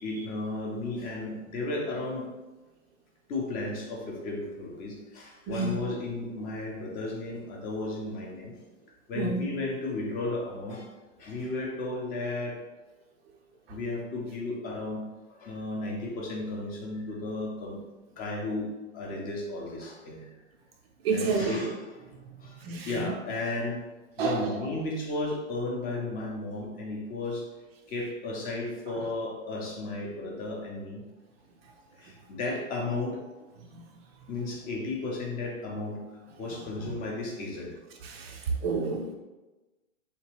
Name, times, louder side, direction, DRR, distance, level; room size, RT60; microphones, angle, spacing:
voice 1, 0.0-2.3 3.3-8.5 9.1-10.9 11.2-12.6 13.7-15.0 15.3-17.8 18.2-20.3 21.1-22.0 22.4-22.6 22.9-23.8 24.2-27.5 27.9-31.0 32.0-33.5 34.3-36.0 36.4-37.8, left 2 dB, 25° left, 0 dB, 0.6 m, -34 dB
voice 2, 5.5-5.8 9.2-9.5 21.0-21.6 22.6-22.9 24.2-24.5 38.0-39.1, right 4 dB, 50° right, 3 dB, 0.4 m, -29 dB
3.3 x 2.9 x 3.0 m, 1.1 s
hypercardioid pair, 125°, 39 cm